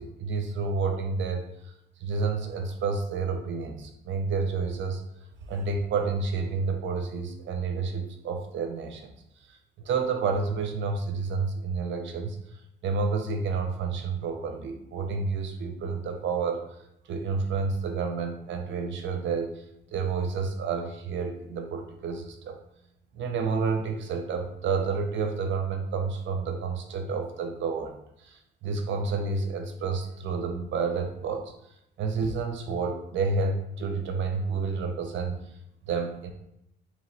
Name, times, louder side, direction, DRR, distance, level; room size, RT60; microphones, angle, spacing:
voice 1, 0.0-1.7 2.0-5.0 5.5-9.1 9.5-12.4 12.8-16.8 17.1-19.6 19.9-22.6 23.1-31.5 32.0-35.4 35.8-36.3, right 4 dB, 70° right, 5 dB, 0.7 m, -30 dB
3.2 x 3.1 x 4.2 m, 0.78 s
cardioid pair, 90°, 20 cm